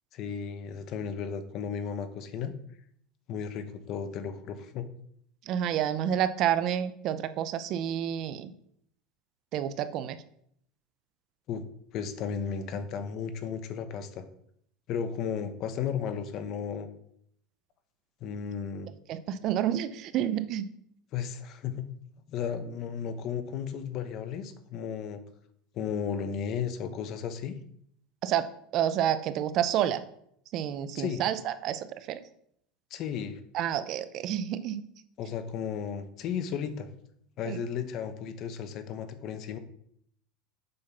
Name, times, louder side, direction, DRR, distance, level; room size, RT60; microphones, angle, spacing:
voice 1, 0.1-2.5 3.3-4.9 11.5-11.6 11.9-14.3 14.9-16.9 18.2-18.9 21.1-21.9 22.3-25.2 25.7-27.5 30.9-31.2 32.9-33.4 35.2-36.9 37.4-39.6, left 7 dB, 45° left, 10 dB, 1.0 m, -34 dB
voice 2, 5.5-8.5 9.5-10.2 19.1-20.7 28.2-30.0 30.5-32.2 33.5-34.8 37.4-37.6, right 10 dB, 45° right, 13 dB, 0.6 m, -29 dB
7.7 x 5.9 x 5.8 m, 0.69 s
supercardioid pair, 145°, 0 cm